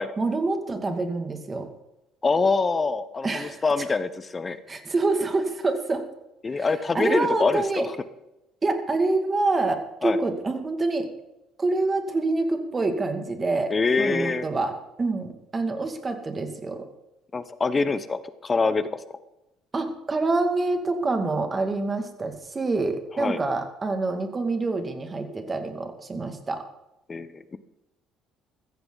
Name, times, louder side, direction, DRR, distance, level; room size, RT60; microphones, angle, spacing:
voice 1, 0.2-1.7 3.2-3.6 4.7-6.0 6.5-6.7 6.9-7.9 8.6-11.1 11.6-16.9 19.7-26.6, right 3 dB, 25° right, 6 dB, 2.2 m, -26 dB
voice 2, 2.2-4.6 6.4-7.9 10.0-10.2 13.7-14.5 17.3-19.0 23.2-23.4 27.1-27.6, left 4 dB, 25° left, 13 dB, 0.9 m, -25 dB
15.5 x 14.5 x 4.0 m, 0.92 s
cardioid pair, 120°, 0 cm